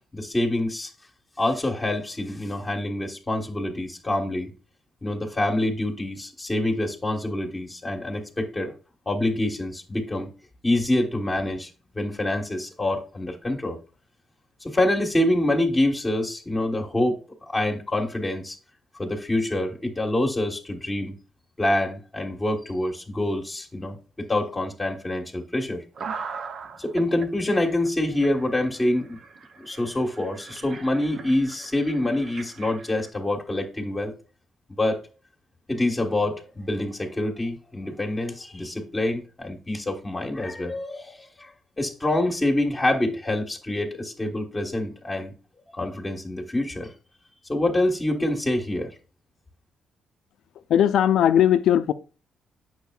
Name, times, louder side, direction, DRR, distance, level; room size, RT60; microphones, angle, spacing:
voice 1, 0.1-0.9 1.4-4.5 5.0-8.7 9.1-10.3 10.6-11.7 11.9-13.8 14.6-18.6 19.0-21.1 21.6-25.8 26.8-29.2 29.6-34.1 34.7-35.0 35.7-41.5 41.8-45.3 45.7-46.9 47.5-48.9, left 1 dB, 20° left, 1.3 m, -26 dB
sound 1, 26.0-27.3 27.8-27.9 28.2-33.1, right 5 dB, 60° right, 0.5 m, -40 dB
voice 2, 50.7-51.9, left 10 dB, 75° left, 0.4 m, -18 dB
8.1 x 6.5 x 2.3 m
cardioid pair, 90°, 0 cm